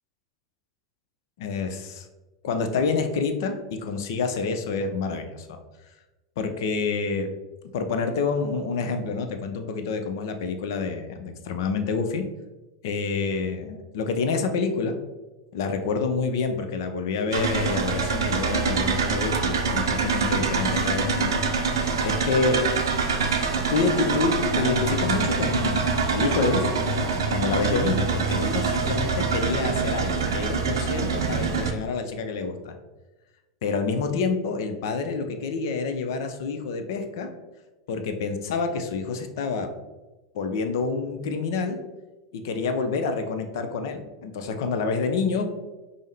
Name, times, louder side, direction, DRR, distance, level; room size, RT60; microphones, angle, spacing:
voice 1, 1.4-2.1 2.4-5.5 6.4-7.3 7.7-12.3 12.8-15.0 15.5-22.6 23.7-26.8 27.3-32.7 33.6-37.3 37.9-39.7 40.3-41.8 42.3-45.5, left 4 dB, 65° left, 6 dB, 0.5 m, -27 dB
sound 1, 17.3-31.7, right 4 dB, 80° right, 0.5 m, -25 dB
5.3 x 2.1 x 3.3 m, 1.1 s
hypercardioid pair, 90°, 2 cm